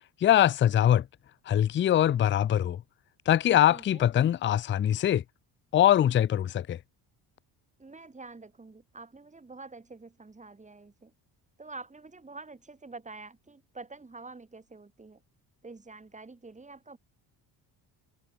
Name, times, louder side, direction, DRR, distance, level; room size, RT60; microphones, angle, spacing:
voice 1, 0.2-1.1 1.5-2.8 3.3-5.2 5.7-6.8, left 11 dB, 25° left, 0.4 m, -23 dB
voice 2, 3.7-4.1 7.8-11.1 11.6-15.2 15.6-17.0, right 3 dB, 15° right, 7.7 m, -47 dB
cardioid pair, 140°, 44 cm